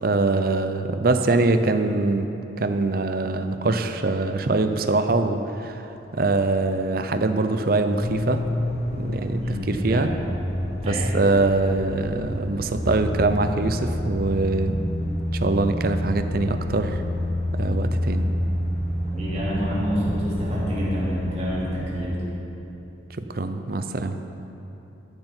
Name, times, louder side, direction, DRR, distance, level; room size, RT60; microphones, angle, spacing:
voice 1, 0.0-2.3 2.6-8.4 8.9-10.1 10.8-14.8 15.3-17.0 17.5-18.3 23.2-24.1, right 3 dB, 50° right, 8 dB, 0.6 m, -23 dB
sound 1, 8.0-22.1, left 1 dB, 35° left, 0.9 m, -28 dB
voice 2, 9.4-10.1 10.8-11.2 19.1-22.2, equal, 35° right, -8 dB, 3.1 m, -28 dB
14.0 x 10.5 x 4.5 m, 3.0 s
head